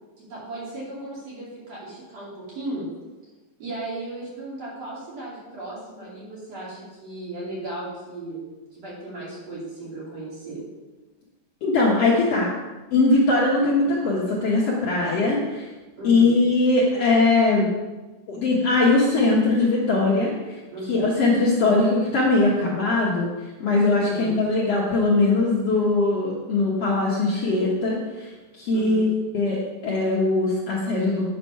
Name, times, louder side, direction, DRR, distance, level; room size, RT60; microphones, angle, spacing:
voice 1, 0.2-2.9 3.6-10.6 16.0-16.4 20.7-21.1 24.0-24.4 28.7-29.1, right 2 dB, 50° right, -6 dB, 3.8 m, -36 dB
voice 2, 11.6-12.5 12.9-15.7 16.0-17.7 18.3-20.6 20.9-23.3 23.6-28.3 28.6-31.3, left 3 dB, 55° left, -5 dB, 2.0 m, -21 dB
9.1 x 6.1 x 5.6 m, 1.2 s
omnidirectional pair, 4.0 m